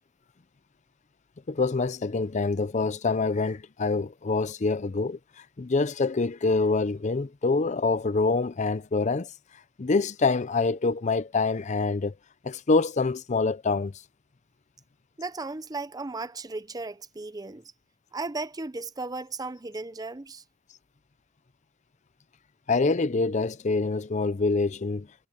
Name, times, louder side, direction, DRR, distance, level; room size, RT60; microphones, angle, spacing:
voice 1, 1.5-5.2 5.6-9.3 9.8-12.1 12.4-13.9 22.7-25.1, left 3 dB, 40° left, 0.5 m, -25 dB
voice 2, 15.2-17.6 18.1-20.4, right 3 dB, 20° right, 0.7 m, -35 dB
head